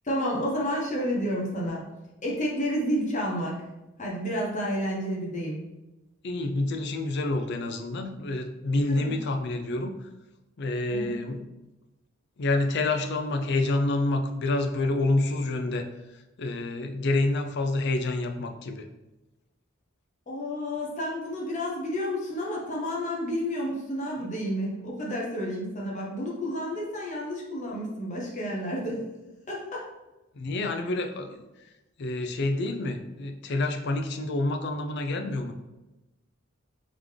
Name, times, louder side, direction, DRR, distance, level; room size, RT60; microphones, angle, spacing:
voice 1, 0.0-1.8 2.2-3.6 4.0-5.6 8.9-9.1 10.9-11.1 20.3-29.0 29.5-29.9, equal, 40° left, -3 dB, 0.9 m, -30 dB
voice 2, 6.2-10.1 10.6-11.5 12.4-15.9 16.1-18.9 30.3-31.4 32.0-35.5, left 2 dB, 55° left, 5 dB, 0.5 m, -28 dB
3.7 x 3.6 x 3.3 m, 1.0 s
head